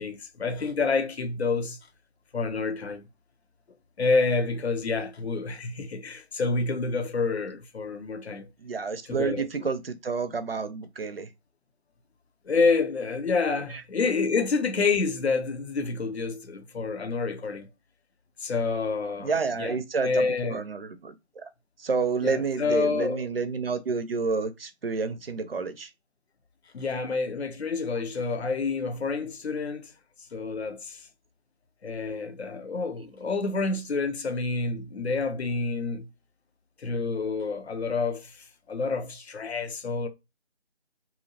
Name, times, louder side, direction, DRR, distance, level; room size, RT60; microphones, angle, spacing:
voice 1, 0.0-1.8 2.3-3.0 4.0-8.5 9.1-9.7 12.5-17.7 18.4-19.8 20.0-20.6 22.2-23.3 26.7-29.9 30.3-31.0 31.8-36.1 36.8-38.4 38.7-40.1, left 4 dB, 70° left, 0.6 m, -28 dB
voice 2, 8.6-11.3 19.2-20.2 20.5-21.4 21.8-25.9, right 4 dB, 60° right, 0.5 m, -29 dB
2.7 x 2.0 x 2.6 m
figure-of-eight pair, 165°, 34 cm